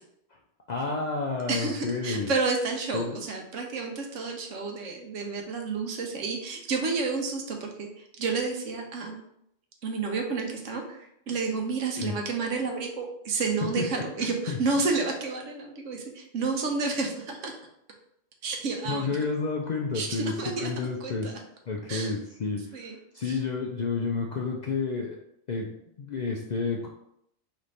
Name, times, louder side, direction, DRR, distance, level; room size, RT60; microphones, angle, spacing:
voice 1, 0.7-2.3 2.9-3.3 12.0-12.2 13.8-13.9 14.2-14.6 18.9-20.3 20.6-21.4 21.7-22.6 23.1-25.2 25.5-25.7 26.0-26.9, left 4 dB, 60° left, 0 dB, 0.4 m, -30 dB
voice 2, 1.5-7.9 8.2-9.2 9.8-17.5 18.4-19.1 19.9-21.3 21.9-22.2 22.7-23.0 23.2-23.4, right 4 dB, 90° right, 2 dB, 1.1 m, -30 dB
3.2 x 3.2 x 3.9 m, 0.76 s
omnidirectional pair, 1.2 m